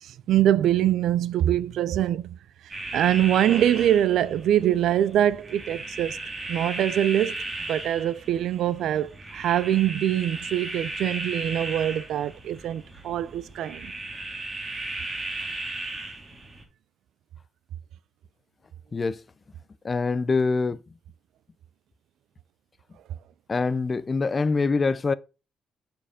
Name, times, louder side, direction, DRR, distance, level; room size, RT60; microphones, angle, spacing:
voice 1, 0.0-2.4 2.9-6.2 6.5-7.4 7.7-13.9, right 11 dB, 75° right, 0.4 m, -24 dB
sound 1, 2.7-16.6, right 2 dB, 25° right, 2.3 m, -36 dB
voice 2, 19.8-20.8 23.5-25.1, left 4 dB, 30° left, 0.4 m, -24 dB
7.3 x 4.5 x 4.9 m
cardioid pair, 90°, 0 cm